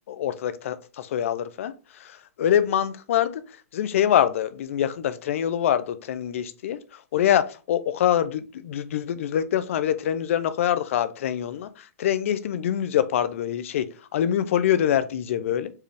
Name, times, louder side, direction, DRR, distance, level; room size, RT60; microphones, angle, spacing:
voice 1, 0.1-13.9 14.1-15.7, left 10 dB, 60° left, 0.5 m, -25 dB
4.7 x 3.0 x 3.4 m
hypercardioid pair, 145°, 8 cm